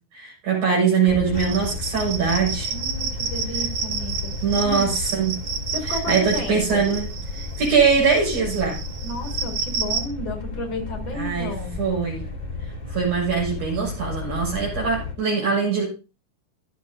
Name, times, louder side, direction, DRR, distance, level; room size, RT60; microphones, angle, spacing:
voice 1, 0.1-2.7 4.4-5.4 5.8-7.1 7.3-8.8 11.1-11.5 11.8-12.3 12.9-15.9, right 5 dB, 80° right, -2 dB, 8.1 m, -22 dB
sound 1, 1.1-15.1, left 3 dB, 15° left, 2.3 m, -33 dB
sound 2, 1.4-10.0, right 6 dB, 60° right, 2.4 m, -31 dB
voice 2, 2.7-4.9 5.7-6.9 9.0-11.8, left 1 dB, 55° left, 3 dB, 5.4 m, -33 dB
23.5 x 7.8 x 2.8 m, 0.31 s
omnidirectional pair, 3.5 m